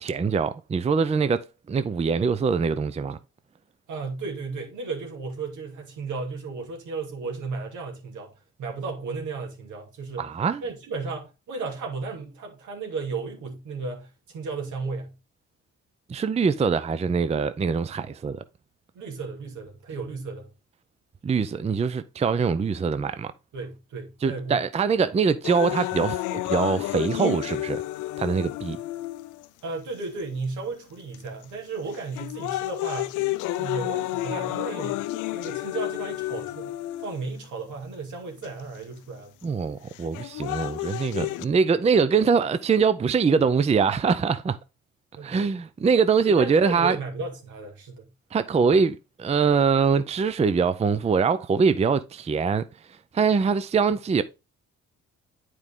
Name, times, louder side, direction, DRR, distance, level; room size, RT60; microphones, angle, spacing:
voice 1, 0.0-3.2 10.2-10.6 16.1-18.4 21.2-23.3 24.2-27.8 28.2-28.8 39.4-44.6 45.2-47.0 48.3-54.2, right 5 dB, 20° right, 0.5 m, -23 dB
voice 2, 3.9-8.3 8.6-10.3 10.6-15.2 18.9-20.5 23.5-24.6 29.6-33.2 33.5-35.1 35.3-36.7 37.0-39.3 45.2-45.4 46.2-48.1 48.5-48.7, right 4 dB, 80° right, 2.5 m, -34 dB
sound 1, 25.4-29.5 30.2-30.3 31.1-31.4 31.9-37.4 38.4-38.5 39.9-41.4, left 16 dB, 90° left, 0.5 m, -30 dB
8.8 x 4.7 x 3.6 m
cardioid pair, 90°, 30 cm